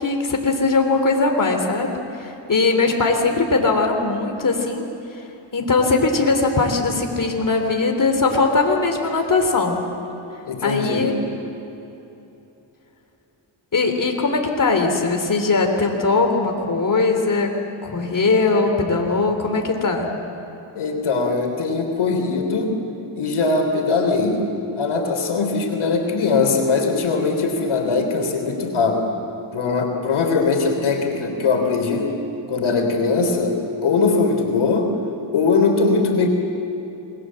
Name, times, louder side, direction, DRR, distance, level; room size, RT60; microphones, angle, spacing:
voice 1, 0.0-5.2 5.5-9.8 10.6-11.1 13.7-17.5 17.8-20.1, left 3 dB, 40° left, 3 dB, 3.3 m, -20 dB
voice 2, 10.4-11.1 20.8-22.8 23.2-24.4 24.8-29.2 29.5-32.2 32.5-34.9 35.3-36.3, left 4 dB, 85° left, 3 dB, 3.5 m, -21 dB
28.0 x 21.0 x 7.6 m, 3.0 s
cardioid pair, 80°, 48 cm